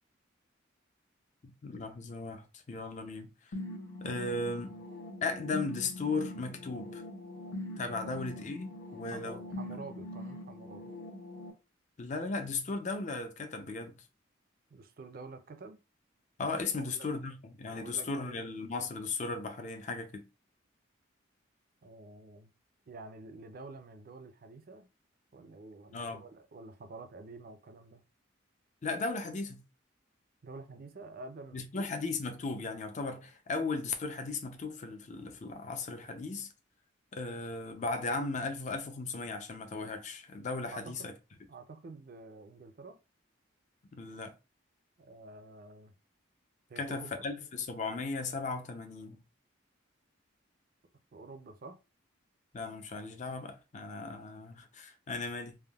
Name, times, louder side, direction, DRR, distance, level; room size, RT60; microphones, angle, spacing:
voice 1, 1.4-3.3 4.0-4.8 5.2-7.0 7.8-9.4 12.0-13.9 16.4-20.2 25.9-26.3 28.8-29.6 31.5-36.5 37.1-41.1 43.9-44.3 46.8-49.2 52.5-55.6, left 3 dB, 40° left, 0.4 m, -36 dB
sound 1, 3.5-11.5, left 1 dB, 80° left, 0.6 m, -43 dB
voice 2, 9.1-10.9 14.7-15.8 16.7-17.1 17.7-18.4 21.8-22.5 22.9-24.9 25.3-28.0 30.4-31.9 40.7-41.1 41.5-43.0 45.0-45.9 46.7-47.2 51.1-51.8, right 3 dB, 50° right, 0.4 m, -49 dB
3.4 x 2.1 x 2.3 m
head